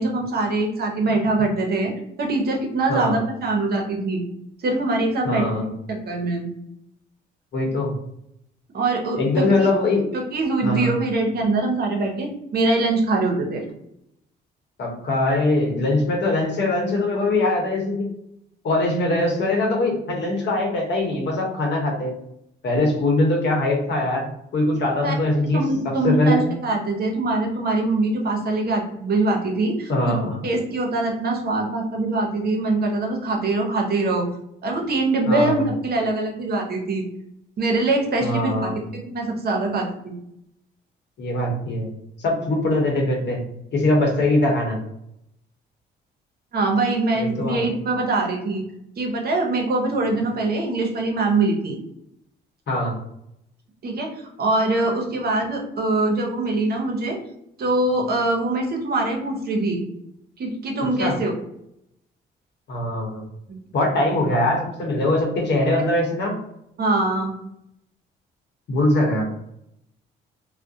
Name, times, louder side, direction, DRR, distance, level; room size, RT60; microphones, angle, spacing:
voice 1, 0.0-1.9 2.2-4.2 4.6-6.5 8.7-9.5 10.1-13.6 25.0-25.1 25.5-30.2 30.4-34.3 34.6-37.0 37.6-40.1 46.5-48.6 49.0-51.8 53.8-54.1 54.4-57.2 57.6-59.8 60.4-61.3 63.5-63.6 66.8-67.3, right 2 dB, 50° right, 1 dB, 0.7 m, -23 dB
voice 2, 5.2-5.6 7.5-7.9 9.2-10.1 10.6-11.0 14.8-18.1 18.6-22.1 22.6-26.4 29.9-30.4 35.3-35.7 38.2-38.8 41.2-41.9 42.2-43.4 43.7-44.8 47.2-47.8 52.7-53.0 61.0-61.2 62.7-63.2 63.7-66.3 68.7-69.2, left 2 dB, 60° left, 0 dB, 0.9 m, -22 dB
2.3 x 2.1 x 2.6 m, 0.78 s
supercardioid pair, 75°, 20 cm